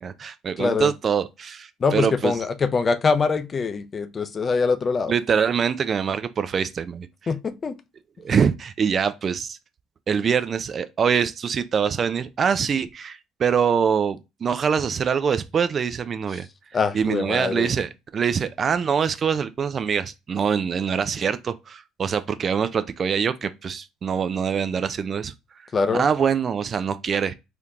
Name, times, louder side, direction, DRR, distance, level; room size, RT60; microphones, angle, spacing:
voice 1, 0.0-2.3 5.1-7.1 8.2-9.6 10.1-16.5 16.9-25.3 25.9-27.3, right 7 dB, 40° right, 0.4 m, -24 dB
voice 2, 0.6-0.9 1.8-5.1 7.3-7.7 16.7-17.7 25.7-26.0, left 4 dB, 35° left, 0.4 m, -23 dB
3.4 x 2.8 x 2.4 m
hypercardioid pair, 65°, 0 cm